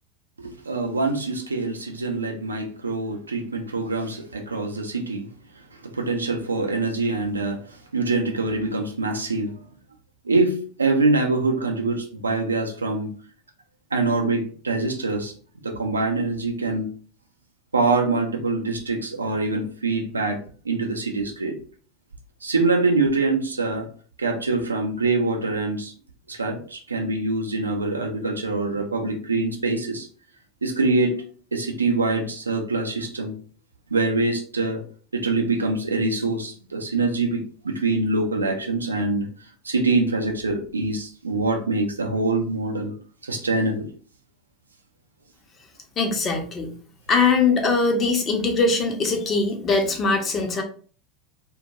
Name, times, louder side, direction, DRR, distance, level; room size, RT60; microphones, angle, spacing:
voice 1, 0.4-5.3 5.8-9.6 10.2-13.1 13.9-15.3 15.6-16.9 17.7-20.4 20.6-21.5 22.4-23.9 24.2-25.9 26.3-30.1 30.6-31.2 31.5-33.3 33.9-34.8 35.1-39.3 39.6-42.9 43.2-43.9, right 3 dB, 80° right, 3 dB, 0.4 m, -24 dB
voice 2, 46.0-46.7 47.1-50.6, left 4 dB, 30° left, 4 dB, 0.6 m, -21 dB
2.2 x 2.1 x 2.6 m, 0.43 s
figure-of-eight pair, 80°, 0 cm